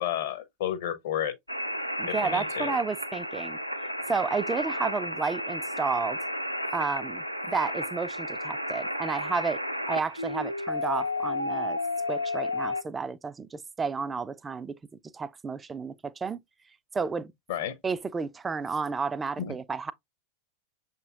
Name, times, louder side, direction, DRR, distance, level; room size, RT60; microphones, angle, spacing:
voice 1, 0.0-1.3 2.1-2.7 17.5-17.8 19.4-19.5, left 10 dB, 55° left, 0.7 m, -31 dB
sound 1, 1.5-12.8, left 1 dB, 90° right, 0.4 m, -32 dB
voice 2, 2.0-3.6 4.1-6.2 6.7-9.6 9.9-11.8 12.1-14.8 15.1-16.4 16.9-17.3 17.8-19.9, right 5 dB, 15° right, 0.3 m, -31 dB
6.6 x 2.9 x 2.4 m
figure-of-eight pair, 90°, 0 cm